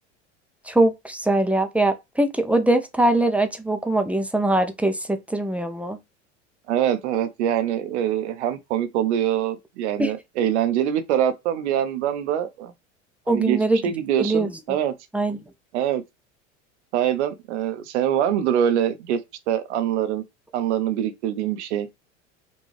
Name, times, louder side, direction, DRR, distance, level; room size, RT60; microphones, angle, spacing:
voice 1, 0.7-6.0 10.0-10.1 13.3-13.8 14.2-14.5 15.1-15.4, right 2 dB, 5° right, 0.5 m, -22 dB
voice 2, 6.7-12.7 13.3-13.6 13.8-14.9 15.7-16.0 16.9-19.2 19.5-20.2 20.5-21.9, right 10 dB, 70° right, 0.7 m, -24 dB
5.1 x 2.3 x 3.3 m
hypercardioid pair, 85°, 36 cm